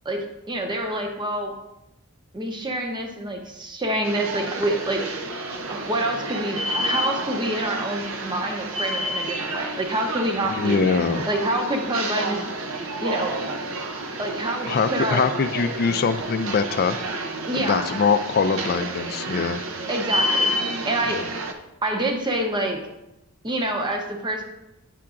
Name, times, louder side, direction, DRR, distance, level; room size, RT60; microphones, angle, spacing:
voice 1, 0.0-1.5 2.3-5.0 5.7-10.8 11.3-12.4 13.0-13.4 14.2-15.2 17.5-17.9 19.9-20.5 20.8-21.2 21.8-22.8 23.4-24.4, right 1 dB, 20° right, 2 dB, 0.7 m, -27 dB
sound 1, 4.0-21.5, right 1 dB, 65° right, 0.6 m, -30 dB
voice 2, 10.5-11.3 14.7-17.0 17.5-19.6 21.1-21.3, left 5 dB, 45° left, 10 dB, 0.3 m, -23 dB
8.3 x 5.7 x 2.5 m, 0.93 s
head